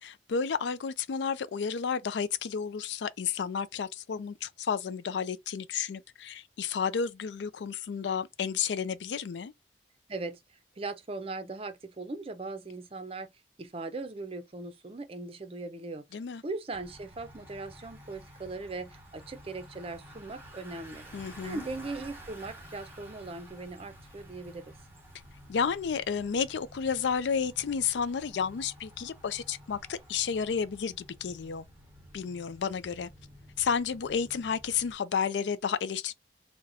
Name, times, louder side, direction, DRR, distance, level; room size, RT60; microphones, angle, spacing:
voice 1, 0.0-9.5 16.1-16.4 21.1-21.6 25.5-31.6 32.1-33.1 33.6-36.1, left 6 dB, 80° left, 0.4 m, -31 dB
voice 2, 10.1-10.4 10.8-13.3 13.6-16.0 16.4-24.7, right 3 dB, 35° right, 0.5 m, -39 dB
Bicycle, 16.7-35.0, equal, 10° right, 1.0 m, -51 dB
2.7 x 2.2 x 3.8 m
head